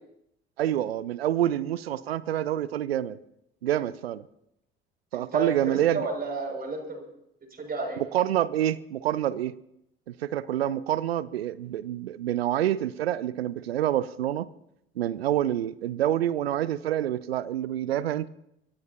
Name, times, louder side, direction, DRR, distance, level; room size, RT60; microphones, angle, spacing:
voice 1, 0.6-3.2 3.6-4.2 5.1-6.1 8.0-9.5 10.1-14.5 15.0-18.3, right 12 dB, 80° right, 19 dB, 0.5 m, -27 dB
voice 2, 5.1-7.0 7.5-8.0, right 3 dB, 30° right, 1 dB, 6.5 m, -32 dB
25.0 x 17.0 x 2.9 m, 0.79 s
figure-of-eight pair, 50°, 30 cm